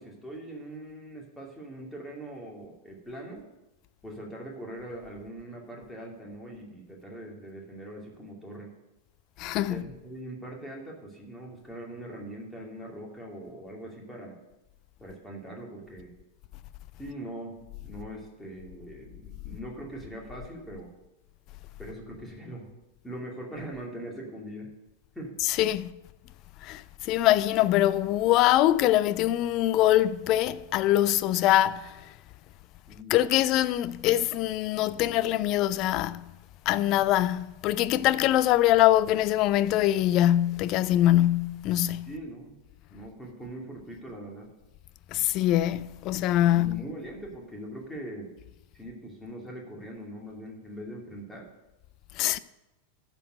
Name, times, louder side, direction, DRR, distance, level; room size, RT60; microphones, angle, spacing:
voice 1, 0.0-3.4 4.0-8.7 9.7-14.3 15.0-16.1 17.0-20.9 21.8-22.7 23.0-24.7 25.1-25.4 32.9-33.2 42.0-42.6 42.9-44.5 46.5-48.3 48.7-51.5, right 1 dB, 5° left, 2.6 m, -41 dB
voice 2, 9.4-9.8 25.4-25.9 26.6-31.9 33.1-36.3 36.7-42.1 45.1-46.8 52.2-52.4, left 13 dB, 40° left, 0.4 m, -23 dB
12.0 x 4.6 x 7.8 m
figure-of-eight pair, 90°, 0 cm